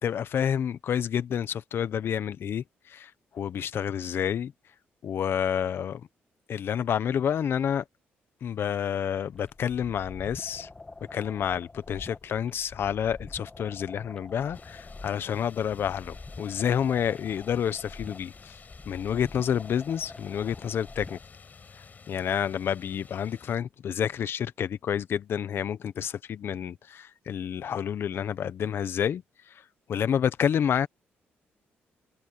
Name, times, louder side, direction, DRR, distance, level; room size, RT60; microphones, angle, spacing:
voice 1, 0.0-4.5 5.0-6.1 6.5-7.8 8.4-10.7 11.1-18.6 18.9-21.2 22.1-29.2 29.9-30.9, left 8 dB, 60° left, 1.1 m, -29 dB
sound 1, 9.3-21.3, left 3 dB, 20° left, 2.0 m, -46 dB
sound 2, 14.5-23.6, left 5 dB, 40° left, 6.6 m, -51 dB
cardioid pair, 80°, 4 cm